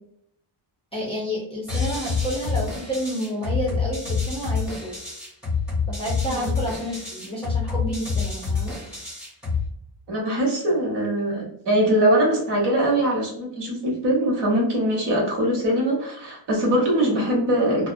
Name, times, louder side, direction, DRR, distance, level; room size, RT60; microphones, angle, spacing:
voice 1, 0.9-4.9 5.9-8.8, equal, 15° left, -5 dB, 0.4 m, -30 dB
sound 1, 1.7-9.7, left 5 dB, ahead, 0.9 m, -27 dB
voice 2, 10.1-17.9, right 1 dB, 60° right, -2 dB, 0.9 m, -22 dB
2.4 x 2.0 x 2.5 m, 0.73 s
wide cardioid pair, 170°, 47 cm